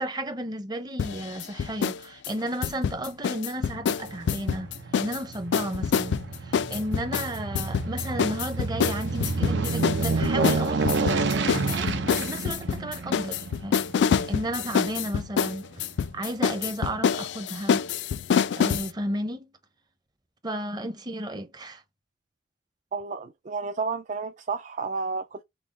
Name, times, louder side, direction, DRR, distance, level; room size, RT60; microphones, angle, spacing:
voice 1, 0.0-4.7 5.0-13.8 14.3-15.7 16.1-17.8 18.5-19.5 20.4-21.8, right 1 dB, 25° right, 0.8 m, -33 dB
sound 1, 1.0-2.0 2.2-5.2 5.5-18.9, left 7 dB, 70° left, 0.3 m, -26 dB
Aircraft, 3.6-16.1 16.6-16.7, right 3 dB, 80° right, 0.8 m, -30 dB
voice 2, 22.9-25.4, right 4 dB, 45° right, 0.4 m, -31 dB
6.0 x 2.0 x 4.1 m
head